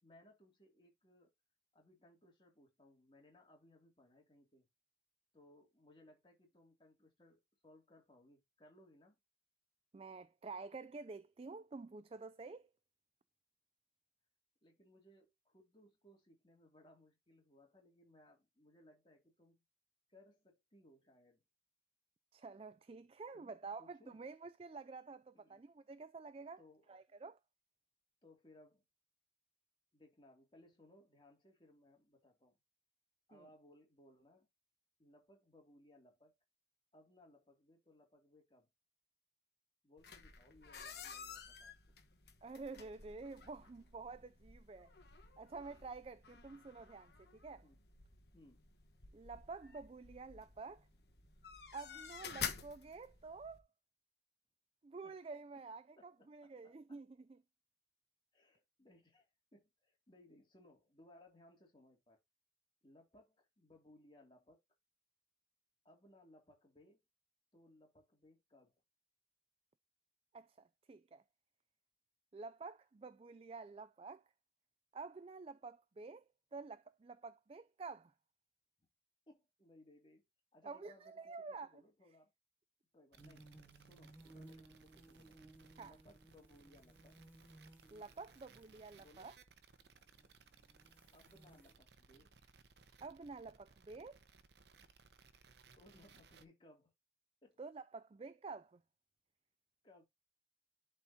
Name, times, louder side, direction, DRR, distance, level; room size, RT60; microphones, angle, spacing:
voice 1, 0.0-1.3 1.7-4.7 5.3-9.2 14.6-19.6 20.1-21.4 23.3-24.2 25.3-25.6 26.6-26.9 28.2-28.8 29.9-32.6 33.3-34.5 35.0-36.4 36.9-38.7 39.8-42.0 47.6-47.8 48.3-48.7 51.2-51.3 55.0-55.2 56.0-57.0 58.3-62.2 62.8-64.6 65.8-67.0 67.5-68.8 79.3-80.2 80.5-82.3 82.9-83.5 83.8-85.4 85.8-87.2 89.0-89.3 91.1-92.3 95.7-96.9 97.4-97.6 99.8-100.0, left 1 dB, 30° left, 2.7 m, -65 dB
voice 2, 9.9-12.7 22.3-26.6 26.9-27.4 33.3-33.5 42.4-44.9 45.4-47.6 49.1-50.9 51.7-53.7 54.8-57.4 70.3-71.2 72.3-74.2 74.9-76.2 76.5-78.1 80.6-81.8 85.8-85.9 87.9-89.3 93.0-94.2 97.6-98.8, right 4 dB, 35° right, 0.3 m, -50 dB
sound 1, 40.0-53.6, left 7 dB, 70° left, 1.3 m, -51 dB
sound 2, 83.1-96.4, right 4 dB, 75° right, 0.9 m, -65 dB
sound 3, 83.2-89.3 89.9-91.7, right 2 dB, 10° right, 2.4 m, -61 dB
11.5 x 4.4 x 2.8 m
head